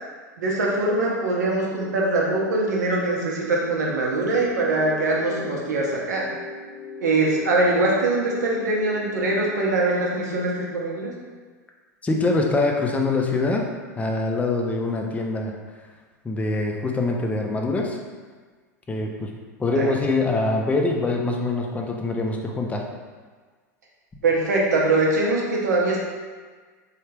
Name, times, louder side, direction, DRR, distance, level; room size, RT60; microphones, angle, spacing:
voice 1, 0.4-6.2 7.0-11.1 19.7-19.9 24.2-26.1, right 2 dB, 85° right, -3 dB, 0.7 m, -22 dB
sound 1, 1.6-9.7, left 2 dB, 70° left, 0.8 m, -40 dB
voice 2, 12.0-13.7 14.0-15.5 16.2-18.0 18.9-19.3 19.6-22.8, left 2 dB, 15° left, 1 dB, 0.5 m, -24 dB
3.2 x 2.3 x 3.3 m, 1.5 s
hypercardioid pair, 95°, 9 cm